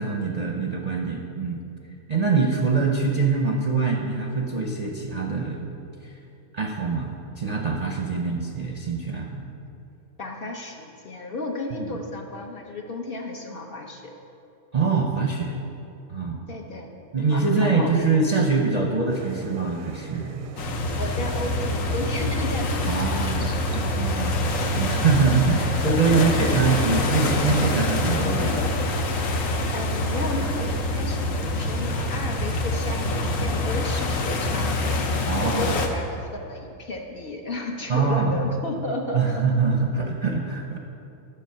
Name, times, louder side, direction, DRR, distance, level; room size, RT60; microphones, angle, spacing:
voice 1, 0.0-1.6 2.1-5.7 6.0-6.1 6.5-9.4 11.7-11.9 14.7-15.5 16.1-16.4 17.1-20.5 22.9-23.6 24.0-28.6 35.2-35.8 37.9-38.4 39.1-40.8, right 4 dB, 40° right, 0 dB, 0.6 m, -24 dB
voice 2, 8.1-8.5 10.2-14.1 16.5-16.9 17.3-18.1 21.0-24.0 26.1-26.7 29.7-35.0 35.4-39.4, left 2 dB, 50° left, 1 dB, 0.9 m, -33 dB
sound 1, 19.1-28.4, right 7 dB, 80° right, 1.0 m, -43 dB
sound 2, 20.6-35.9, left 2 dB, 70° left, 1.3 m, -25 dB
10.0 x 6.9 x 5.6 m, 2.7 s
omnidirectional pair, 1.4 m